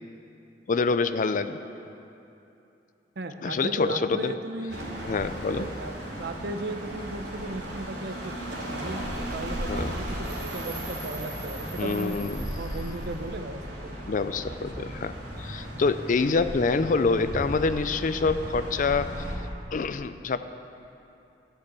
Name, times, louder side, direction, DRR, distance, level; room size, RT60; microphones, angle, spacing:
voice 1, 0.7-1.6 3.4-4.3 5.1-5.7 9.7-9.9 11.8-12.5 14.1-19.2 19.7-20.4, left 4 dB, 50° left, 12 dB, 0.4 m, -26 dB
voice 2, 3.2-4.8 5.6-8.4 8.7-12.2 12.6-14.1 14.8-14.9, right 2 dB, 65° right, 7 dB, 0.8 m, -36 dB
sound 1, 4.7-19.4, equal, 90° right, 2.9 m, -36 dB
13.0 x 6.7 x 8.5 m, 2.8 s
head